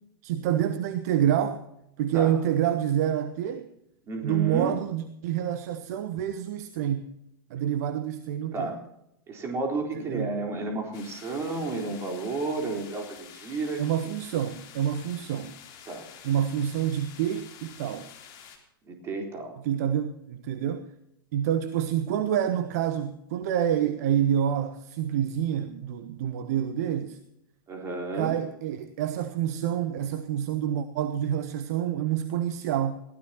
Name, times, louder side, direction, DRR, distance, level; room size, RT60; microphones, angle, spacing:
voice 1, 0.2-1.6 2.0-3.7 4.2-7.1 7.5-8.8 9.9-10.4 13.8-15.6 16.2-18.1 19.6-20.9 21.3-27.2 28.1-33.0, right 10 dB, 45° right, 11 dB, 0.9 m, -27 dB
voice 2, 4.1-4.7 8.5-8.8 9.3-13.8 15.9-16.1 18.9-19.5 27.7-28.4, right 3 dB, 20° right, 2 dB, 3.9 m, -32 dB
sound 1, 10.9-18.6, left 8 dB, 35° left, 3.5 m, -48 dB
21.5 x 16.0 x 2.9 m, 0.83 s
figure-of-eight pair, 100°, 12 cm